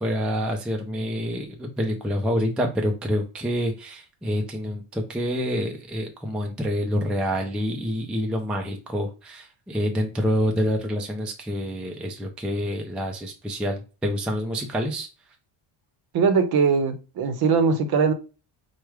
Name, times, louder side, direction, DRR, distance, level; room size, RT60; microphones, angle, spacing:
voice 1, 0.0-15.1, equal, ahead, 0.3 m, -27 dB
voice 2, 16.1-18.1, right 5 dB, 50° right, 0.7 m, -21 dB
4.7 x 2.2 x 4.7 m
cardioid pair, 165°, 49 cm